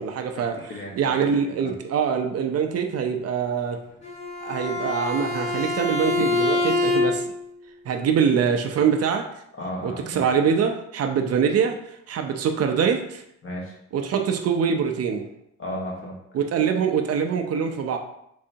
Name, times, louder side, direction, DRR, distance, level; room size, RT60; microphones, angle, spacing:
voice 1, 0.0-0.6 1.0-3.8 4.4-7.3 7.9-9.2 9.8-11.8 12.1-13.2 13.9-15.3 16.3-18.0, right 7 dB, 55° right, 5 dB, 0.5 m, -24 dB
voice 2, 0.6-1.0 1.4-1.7 9.6-10.3 13.4-13.7 15.6-16.2, left 1 dB, 45° left, -2 dB, 1.3 m, -34 dB
Bowed string instrument, 4.0-7.4, left 3 dB, 20° left, 1.4 m, -25 dB
3.8 x 3.2 x 2.7 m, 0.76 s
cardioid pair, 90°, 30 cm